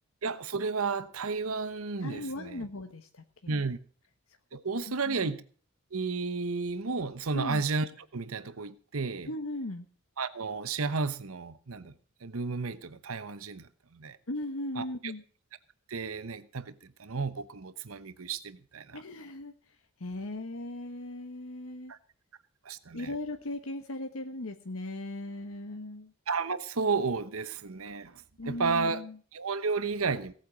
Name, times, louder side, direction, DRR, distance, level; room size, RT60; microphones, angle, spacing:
voice 1, 0.2-2.7 3.5-3.8 4.5-5.4 5.9-9.3 10.2-11.9 12.2-14.2 14.8-15.1 15.9-19.0 21.9-22.0 22.6-23.1 26.3-29.0 29.3-30.3, right 4 dB, 85° right, 1.0 m, -32 dB
voice 2, 2.0-3.7 4.9-5.3 7.3-7.6 9.2-9.9 14.3-15.2 18.9-19.5 20.0-21.9 22.9-26.1 28.4-29.2, left 1 dB, 75° left, 1.3 m, -38 dB
18.0 x 8.8 x 6.2 m
head